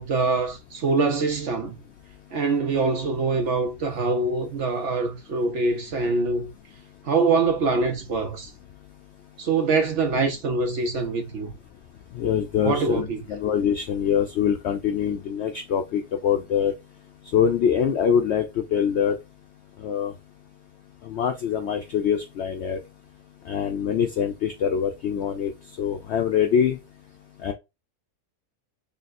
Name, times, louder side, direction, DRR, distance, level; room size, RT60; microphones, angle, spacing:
voice 1, 0.0-1.8 2.3-6.5 7.0-8.5 9.4-11.5 12.6-13.3, right 3 dB, 60° right, 0.9 m, -24 dB
voice 2, 12.1-16.7 17.3-19.2 19.8-20.1 21.0-22.8 23.5-25.5 25.8-26.8 27.4-27.5, left 8 dB, 70° left, 0.6 m, -24 dB
4.0 x 3.4 x 2.5 m
omnidirectional pair, 1.7 m